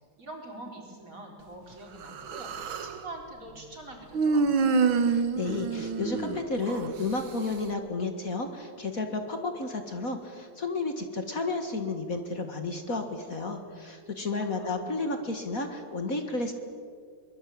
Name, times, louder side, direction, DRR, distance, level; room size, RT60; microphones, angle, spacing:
voice 1, 0.2-2.5 2.8-4.7 14.4-15.2, right 2 dB, 40° right, 1 dB, 5.0 m, -44 dB
Human voice, 2.0-3.0 4.1-6.9, right 4 dB, 85° right, 2.1 m, -27 dB
voice 2, 5.1-16.5, left 3 dB, 45° left, 6 dB, 2.2 m, -32 dB
24.0 x 21.5 x 8.7 m, 2.2 s
omnidirectional pair, 2.1 m